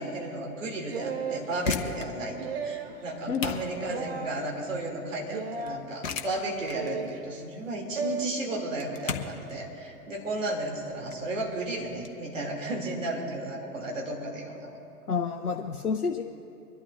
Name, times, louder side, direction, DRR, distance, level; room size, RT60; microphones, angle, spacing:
voice 1, 0.0-14.8, right 2 dB, 55° right, -1 dB, 3.2 m, -34 dB
sound 1, 0.9-1.5 2.4-3.0 3.9-4.3 5.3-5.8 6.7-7.2 8.0-8.3, right 5 dB, 40° right, 1.0 m, -34 dB
sound 2, 1.4-12.1, left 6 dB, 55° left, 1.2 m, -38 dB
voice 2, 15.1-16.2, left 5 dB, 75° left, 3 dB, 0.9 m, -29 dB
25.0 x 12.0 x 2.7 m, 2.6 s
figure-of-eight pair, 115°, 45 cm